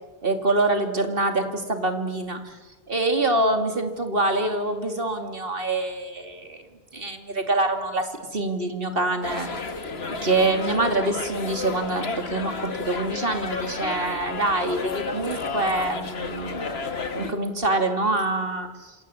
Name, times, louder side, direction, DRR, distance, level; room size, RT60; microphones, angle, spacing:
voice 1, 0.2-2.6 2.9-6.6 6.9-9.5 10.2-16.8 17.1-19.0, right 2 dB, 60° right, 6 dB, 3.1 m, -25 dB
sound 1, 9.2-17.3, left 4 dB, 75° left, 1.9 m, -32 dB
28.0 x 26.0 x 8.0 m, 1.2 s
omnidirectional pair, 1.1 m